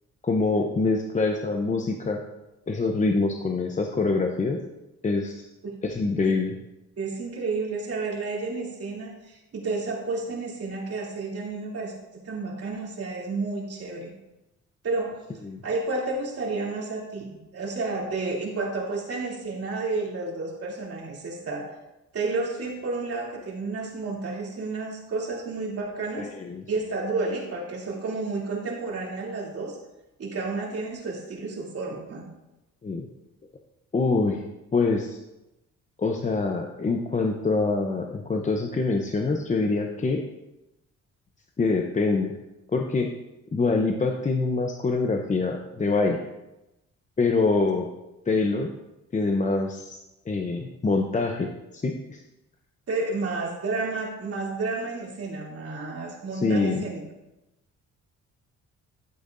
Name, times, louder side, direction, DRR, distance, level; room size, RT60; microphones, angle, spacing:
voice 1, 0.2-2.2 2.7-4.6 5.0-5.5 5.8-6.5 15.4-15.6 26.2-26.6 32.8-33.1 33.9-34.4 34.7-35.2 36.0-40.2 41.6-42.3 42.7-43.1 43.5-46.2 47.2-47.9 48.3-48.7 49.1-50.0 50.3-52.2 56.3-56.8, left 3 dB, 25° left, 3 dB, 0.7 m, -25 dB
voice 2, 7.0-11.9 12.2-14.1 14.8-15.2 15.6-21.7 22.1-26.3 26.7-29.8 30.2-32.3 52.9-57.0, right 3 dB, 50° right, -3 dB, 2.9 m, -31 dB
12.0 x 8.3 x 2.6 m, 0.96 s
cardioid pair, 90°, 30 cm